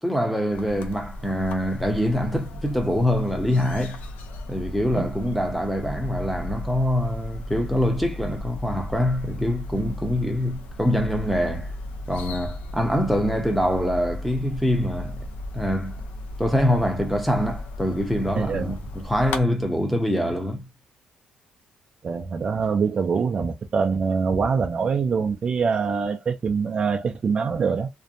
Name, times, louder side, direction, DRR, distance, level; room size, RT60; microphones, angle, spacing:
voice 1, 0.0-4.0 4.5-11.7 12.1-15.2 15.5-16.0 16.4-20.7, equal, ahead, 0.6 m, -24 dB
sound 1, 0.5-19.4, left 1 dB, 80° left, 0.5 m, -36 dB
voice 2, 18.3-18.8 22.0-27.9, right 5 dB, 40° right, 0.3 m, -24 dB
2.6 x 2.1 x 2.5 m
cardioid pair, 120°, 3 cm